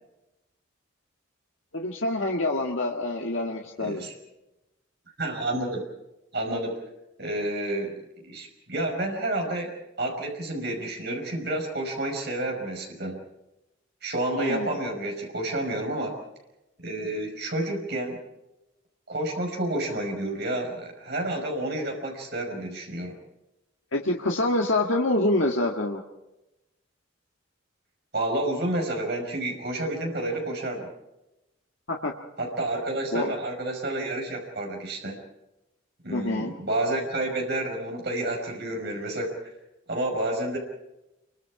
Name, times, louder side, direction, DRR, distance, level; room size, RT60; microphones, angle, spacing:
voice 1, 1.7-4.0 14.3-14.8 23.9-26.0 31.9-32.1 33.1-33.3 36.1-36.5, left 2 dB, 70° left, 0 dB, 1.7 m, -26 dB
voice 2, 3.8-4.1 5.2-5.8 6.3-6.8 7.2-8.0 8.3-13.2 14.0-16.2 16.8-18.2 19.1-23.2 28.1-30.9 32.4-35.2 36.0-39.5 39.9-40.6, right 1 dB, 50° right, 1 dB, 5.3 m, -30 dB
28.0 x 24.0 x 4.8 m, 0.96 s
head